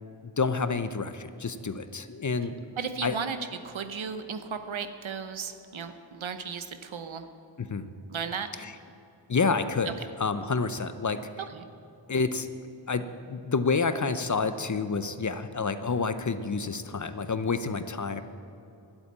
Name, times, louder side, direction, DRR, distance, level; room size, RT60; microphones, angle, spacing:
voice 1, 0.4-2.5 3.0-3.2 7.6-7.9 8.6-8.7 9.3-11.2 12.1-12.5 12.9-18.2, left 4 dB, 40° left, 11 dB, 0.6 m, -29 dB
voice 2, 2.8-3.4 3.6-7.2 8.1-8.5 9.9-10.0 11.5-11.6, right 6 dB, 80° right, 8 dB, 0.9 m, -35 dB
12.0 x 8.2 x 8.6 m, 2.8 s
wide cardioid pair, 65°, 46 cm